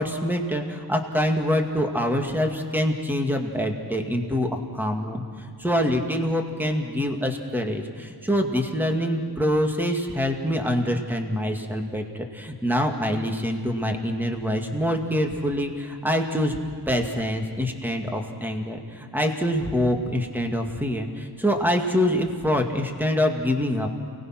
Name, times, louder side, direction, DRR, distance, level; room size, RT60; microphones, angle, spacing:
voice 1, 0.0-16.6 16.9-23.9, equal, 5° right, 3 dB, 2.3 m, -25 dB
29.0 x 19.5 x 6.1 m, 2.2 s
wide cardioid pair, 110°, 41 cm